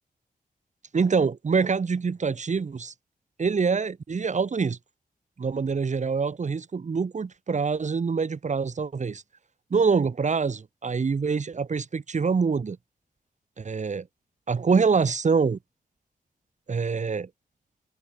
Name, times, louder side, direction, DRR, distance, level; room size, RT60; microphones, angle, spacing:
voice 1, 0.9-2.9 3.4-4.8 5.4-9.2 9.7-12.8 13.6-14.1 14.5-15.6 16.7-17.3, right 5 dB, 50° right, 4.7 m, -25 dB
wide cardioid pair, 135°, 16 cm